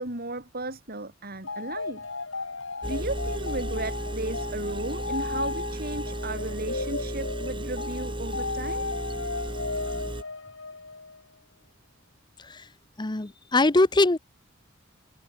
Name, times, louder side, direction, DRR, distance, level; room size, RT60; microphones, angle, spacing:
voice 1, 0.0-2.0 2.8-8.9, right 2 dB, 50° right, 5.5 m, -35 dB
sound 1, 1.4-11.2, left 3 dB, 85° left, 5.1 m, -35 dB
Engine, 2.8-10.2, right 1 dB, 25° right, 1.5 m, -34 dB
voice 2, 13.0-14.2, left 2 dB, 20° left, 0.8 m, -21 dB
head